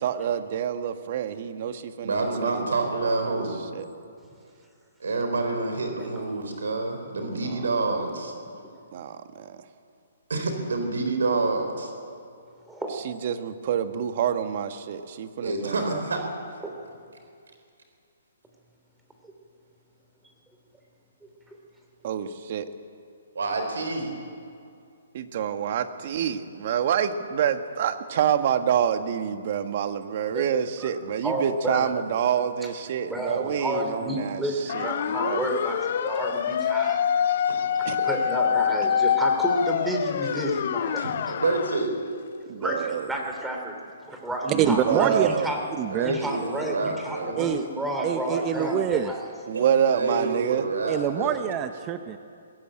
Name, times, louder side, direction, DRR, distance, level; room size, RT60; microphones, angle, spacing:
voice 1, 0.0-2.2 2.4-3.4 3.7-3.9 7.3-7.6 7.9-8.0 8.9-9.6 13.0-16.0 22.0-22.7 25.1-34.4 34.7-34.9 35.2-35.4 37.8-38.1 42.5-43.1 44.5-45.5 49.5-50.7, right 8 dB, 50° right, 9 dB, 1.6 m, -27 dB
voice 2, 2.0-3.6 5.0-8.3 10.3-11.9 15.4-16.2 23.3-24.1 37.4-37.6 40.2-40.3 41.0-41.9 45.9-47.3 49.5-49.6 49.9-51.4, right 3 dB, 80° right, 5 dB, 3.9 m, -28 dB
voice 3, 12.7-13.0 16.6-16.7 19.2-19.3 21.2-21.6 30.3-30.5 30.8-31.9 33.1-37.3 37.8-41.1 42.6-43.8 44.1-45.6 46.0-49.2, right 1 dB, 5° right, 2 dB, 3.1 m, -31 dB
sound 1, 34.7-41.9, left 8 dB, 55° left, 0.7 m, -25 dB
voice 4, 44.6-45.3 45.8-46.2 47.4-47.7 48.0-49.1 50.9-52.2, right 9 dB, 25° right, 9 dB, 0.9 m, -25 dB
21.0 x 17.0 x 9.0 m, 2.4 s
hypercardioid pair, 140°, 0 cm